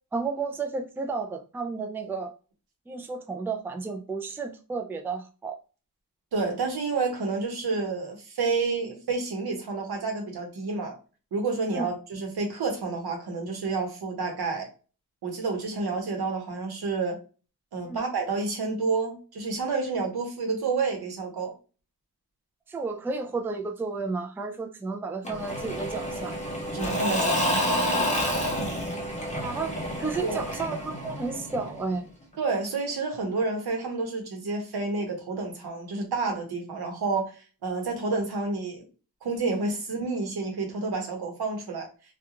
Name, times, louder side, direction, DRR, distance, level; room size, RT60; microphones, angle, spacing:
voice 1, 0.1-2.3 2.9-5.6 11.7-11.9 17.9-18.0 22.7-26.3 29.4-32.1, right 4 dB, 5° right, 0.3 m, -32 dB
voice 2, 6.3-10.9 11.3-14.7 15.2-17.2 17.7-21.5 26.7-28.3 30.2-30.4 32.4-38.8 39.2-41.9, right 3 dB, 90° right, 0.9 m, -29 dB
Engine / Mechanisms / Drill, 25.2-31.9, equal, 20° left, 0.7 m, -29 dB
2.4 x 2.3 x 2.8 m
wide cardioid pair, 115°, 37 cm